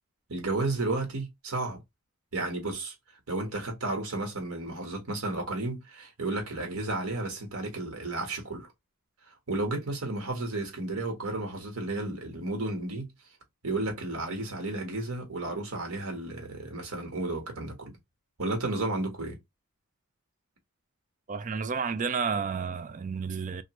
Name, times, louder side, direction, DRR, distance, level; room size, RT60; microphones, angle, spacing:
voice 1, 0.3-1.8 2.3-2.9 3.3-8.7 9.5-13.1 13.6-17.9 18.4-19.4, right 2 dB, 85° right, 1.4 m, -32 dB
voice 2, 21.3-23.6, right 5 dB, 35° right, 0.4 m, -31 dB
2.9 x 2.5 x 2.9 m
head